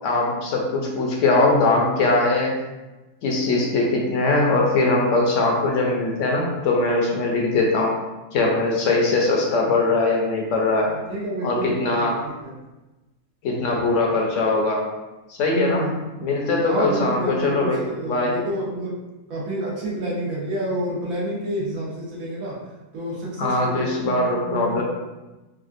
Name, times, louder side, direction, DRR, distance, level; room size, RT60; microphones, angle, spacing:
voice 1, 0.0-2.5 3.2-7.9 8.3-10.9 11.4-12.2 13.4-14.8 15.3-15.9 16.2-18.4 23.4-24.8, left 2 dB, 70° left, -1 dB, 0.9 m, -21 dB
voice 2, 11.1-11.7 12.0-12.1 15.5-16.0 16.7-18.9 19.3-22.5 22.9-24.8, right 1 dB, 80° right, -5 dB, 1.3 m, -28 dB
3.4 x 2.3 x 2.4 m, 1.1 s
omnidirectional pair, 1.5 m